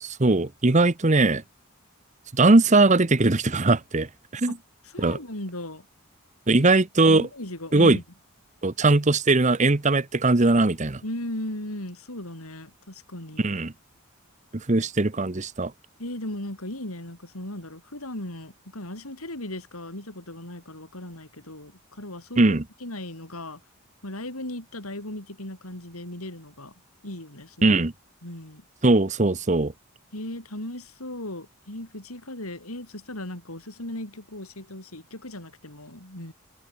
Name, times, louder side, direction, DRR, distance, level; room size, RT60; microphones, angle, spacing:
voice 1, 0.0-1.4 2.3-4.1 4.3-4.6 5.0-5.2 6.5-7.3 7.7-8.0 8.6-11.0 13.4-13.7 14.7-15.7 22.4-22.6 27.6-27.9 28.8-29.7, right 2 dB, 35° right, 0.9 m, -20 dB
voice 2, 4.8-5.8 6.6-6.7 7.1-8.0 11.0-13.5 16.0-23.6 24.0-26.7 27.0-27.8 28.2-28.6 30.1-36.3, left 1 dB, 90° left, 6.1 m, -37 dB
open air
head